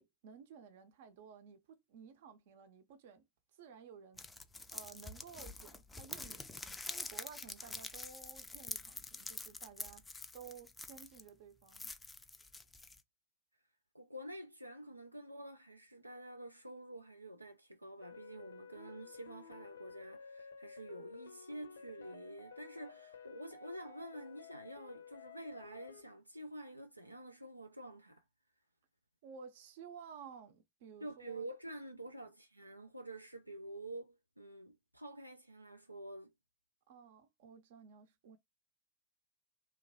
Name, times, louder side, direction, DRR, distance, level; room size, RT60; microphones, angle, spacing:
voice 1, 0.0-3.2 3.6-4.2 4.7-6.6 6.9-10.1 10.3-11.9 29.2-31.4 36.9-38.4, right 6 dB, 55° right, 0.7 m, -54 dB
sound 1, 4.2-11.3 11.7-13.0, left 3 dB, 10° left, 0.4 m, -46 dB
voice 2, 13.9-28.2 31.0-36.3, right 1 dB, 85° right, 0.3 m, -48 dB
sound 2, 18.0-26.0, left 6 dB, 70° left, 0.5 m, -53 dB
3.0 x 2.4 x 2.6 m
figure-of-eight pair, 90°, 0 cm